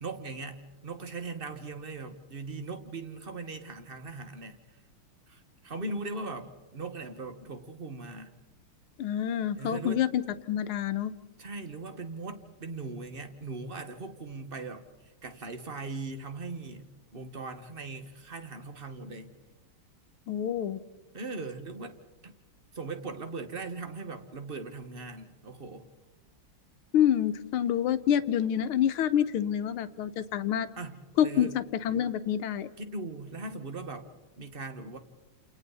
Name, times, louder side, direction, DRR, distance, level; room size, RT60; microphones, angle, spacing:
voice 1, 0.0-4.6 5.3-8.3 9.6-10.0 11.4-14.9 15.2-19.4 21.1-22.3 22.7-25.9 30.8-31.5 32.8-34.1 34.4-35.0, right 3 dB, 30° right, 8 dB, 1.5 m, -39 dB
voice 2, 9.0-10.2 10.5-11.1 20.3-20.8 26.9-30.7 31.2-32.7, left 10 dB, 80° left, 11 dB, 1.8 m, -27 dB
30.0 x 28.5 x 4.1 m, 1.1 s
omnidirectional pair, 2.4 m